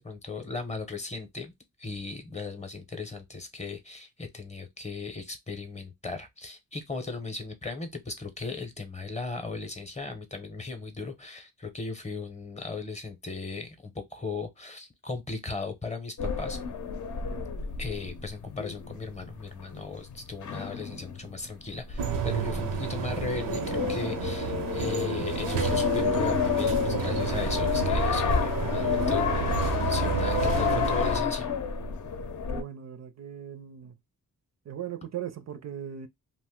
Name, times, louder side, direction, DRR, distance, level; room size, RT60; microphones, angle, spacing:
voice 1, 0.0-1.5 1.8-16.6 17.8-31.5, left 3 dB, 20° left, 0.7 m, -37 dB
sound 1, 16.2-32.6, left 6 dB, 60° left, 0.6 m, -30 dB
voice 2, 17.2-17.5 32.5-33.9 34.7-36.1, right 9 dB, 50° right, 0.5 m, -39 dB
sound 2, 22.0-31.2, right 6 dB, 90° right, 0.7 m, -30 dB
2.5 x 2.1 x 3.5 m
cardioid pair, 80°, 34 cm